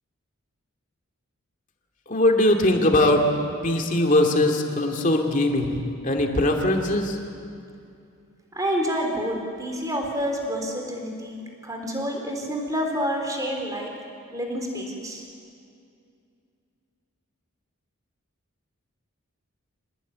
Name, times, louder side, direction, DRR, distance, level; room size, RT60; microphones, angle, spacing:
voice 1, 2.1-3.2 3.6-7.2, left 1 dB, 35° left, 2 dB, 2.6 m, -21 dB
voice 2, 8.5-13.9 14.3-15.2, equal, 15° right, 2 dB, 3.8 m, -28 dB
26.5 x 19.5 x 9.5 m, 2.4 s
head